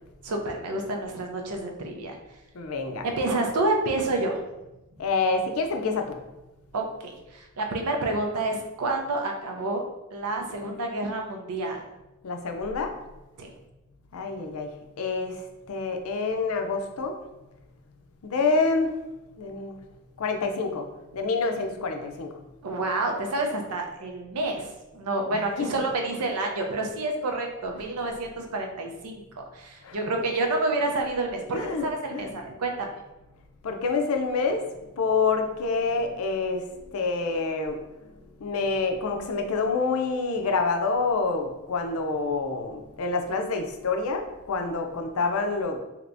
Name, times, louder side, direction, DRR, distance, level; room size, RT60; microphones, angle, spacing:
voice 1, 0.2-2.2 3.0-4.4 6.7-9.8 10.1-11.8 13.4-13.5 22.6-32.9, right 2 dB, 85° right, 3 dB, 0.6 m, -29 dB
voice 2, 2.5-3.0 5.0-6.1 12.2-12.9 14.1-14.7 15.0-15.4 15.7-17.2 18.2-18.9 19.4-19.8 20.2-20.9 21.1-22.3 25.3-25.7 27.8-27.9 29.8-30.0 31.5-32.3 33.6-34.7 34.9-36.6 36.9-37.8 38.4-45.8, left 4 dB, 70° left, 4 dB, 0.5 m, -27 dB
3.3 x 2.9 x 2.5 m, 1.0 s
head